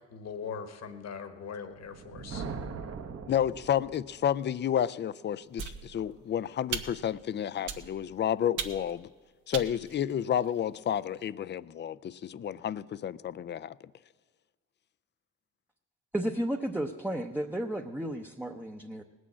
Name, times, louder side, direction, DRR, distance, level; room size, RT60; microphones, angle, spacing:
voice 1, 0.1-2.4, left 6 dB, 60° left, 1.5 m, -40 dB
Thunder, 1.7-4.4, right 5 dB, 50° right, 1.1 m, -41 dB
voice 2, 3.3-9.1 9.5-13.7, left 9 dB, 35° left, 0.4 m, -31 dB
sound 1, 5.6-6.2 6.7-7.2 7.7-8.1 8.6-9.0 9.5-10.7, right 7 dB, 85° right, 1.1 m, -38 dB
voice 3, 16.1-19.0, right 1 dB, 5° right, 0.7 m, -33 dB
19.0 x 6.3 x 8.5 m
cardioid pair, 90°, 30 cm